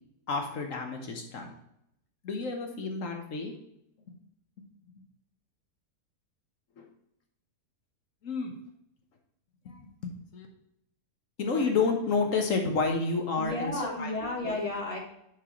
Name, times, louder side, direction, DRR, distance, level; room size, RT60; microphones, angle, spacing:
voice 1, 0.3-1.5 2.2-3.5 6.8-6.9 8.2-8.5 9.6-10.5 11.4-14.1 14.4-14.6, left 4 dB, 55° left, 4 dB, 1.3 m, -30 dB
voice 2, 13.4-15.0, left 2 dB, 25° left, 1 dB, 1.1 m, -32 dB
10.5 x 5.0 x 3.0 m, 0.78 s
omnidirectional pair, 1.7 m